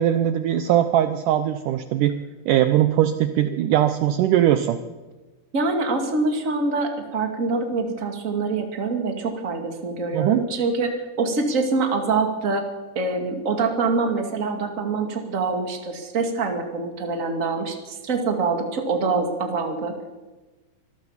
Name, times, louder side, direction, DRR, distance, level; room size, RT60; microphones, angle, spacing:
voice 1, 0.0-2.1 2.5-4.8 10.1-10.4, right 11 dB, 85° right, 10 dB, 1.8 m, -20 dB
voice 2, 5.5-10.9 11.2-12.6 12.9-20.1, right 3 dB, 25° right, 4 dB, 1.8 m, -25 dB
24.5 x 14.5 x 7.3 m, 1.2 s
omnidirectional pair, 4.7 m